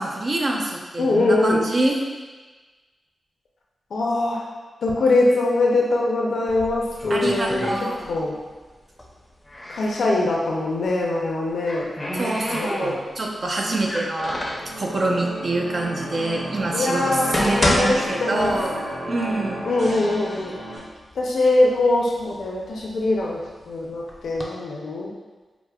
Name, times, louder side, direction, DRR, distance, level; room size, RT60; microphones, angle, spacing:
voice 1, 0.0-2.0 7.1-8.0 12.2-14.4 14.8-18.8 19.1-19.7, right 2 dB, 55° right, 0 dB, 0.5 m, -25 dB
voice 2, 1.0-1.6 3.9-4.4 4.8-8.4 9.7-11.9 12.5-13.0 16.7-18.6 19.6-20.5 21.2-25.1, left 2 dB, 85° left, -2 dB, 0.5 m, -22 dB
sound 1, 6.5-8.4 8.7-10.1 11.2-13.2 13.8-14.7 15.5-15.6 16.3-16.4 17.0-19.0 19.3-19.4 20.1-20.2 20.6-21.2 21.8-23.5 24.1-24.4, left 1 dB, 20° left, 0.5 m, -28 dB
sound 2, 14.4-20.8, right 1 dB, 75° right, 1.0 m, -33 dB
4.5 x 2.0 x 2.3 m, 1.3 s
cardioid pair, 65°, 0 cm